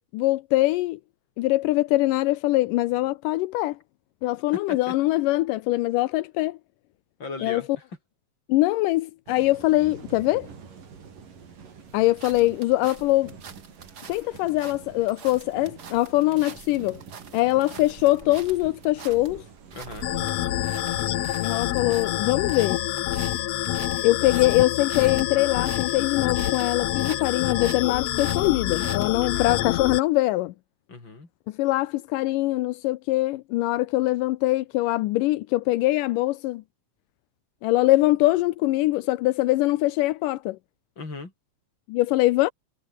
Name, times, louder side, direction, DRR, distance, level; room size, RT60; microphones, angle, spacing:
voice 1, 0.1-1.0 1.4-3.8 4.2-6.6 7.4-7.6 8.5-10.5 11.9-13.3 14.1-17.0 17.3-19.4 21.4-22.8 24.0-30.5 31.6-36.6 37.6-40.6 41.9-42.5, left 18 dB, 85° left, 2.3 m, -23 dB
voice 2, 4.5-4.9 7.2-7.8 19.7-20.1 29.2-29.6 30.9-31.3 41.0-41.3, left 3 dB, 35° left, 5.8 m, -38 dB
sound 1, 9.3-21.4, right 6 dB, 85° right, 5.6 m, -46 dB
sound 2, 11.9-29.3, right 6 dB, 40° right, 1.7 m, -45 dB
sound 3, 20.0-30.0, left 14 dB, 65° left, 1.7 m, -27 dB
omnidirectional pair, 3.7 m